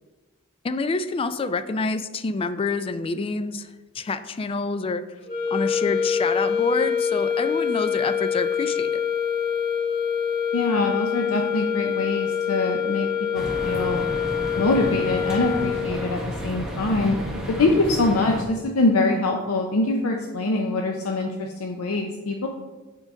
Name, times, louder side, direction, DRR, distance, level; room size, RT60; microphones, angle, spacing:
voice 1, 0.6-3.7 3.9-5.0 5.5-9.0, left 3 dB, 25° left, 12 dB, 0.3 m, -27 dB
sound 1, 5.3-16.1, left 7 dB, 45° left, 1.9 m, -25 dB
voice 2, 10.5-14.1 14.6-17.2 17.5-22.5, left 2 dB, 75° left, 2 dB, 0.6 m, -24 dB
sound 2, 13.3-18.4, equal, 5° right, 0.9 m, -32 dB
7.3 x 3.8 x 4.9 m, 1.2 s
head